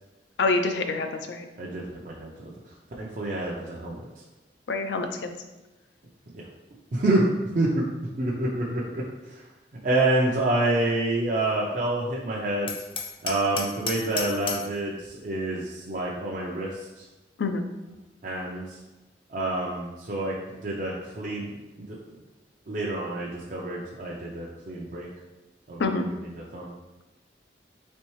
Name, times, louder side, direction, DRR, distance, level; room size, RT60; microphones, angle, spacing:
voice 1, 0.4-1.4 4.7-5.3 17.4-17.6 25.8-26.0, left 3 dB, 80° left, 7 dB, 0.4 m, -26 dB
voice 2, 1.6-2.5 3.0-4.0 6.3-6.4 6.9-7.9 8.2-9.4 9.8-12.7 13.2-16.9 18.2-18.6 19.3-22.0 22.7-25.1 25.7-26.1 26.5-26.7, right 2 dB, 45° right, -4 dB, 0.5 m, -28 dB
Hammer, 12.7-14.8, left 5 dB, 30° left, 0.5 m, -33 dB
4.3 x 3.5 x 3.1 m, 1.1 s
head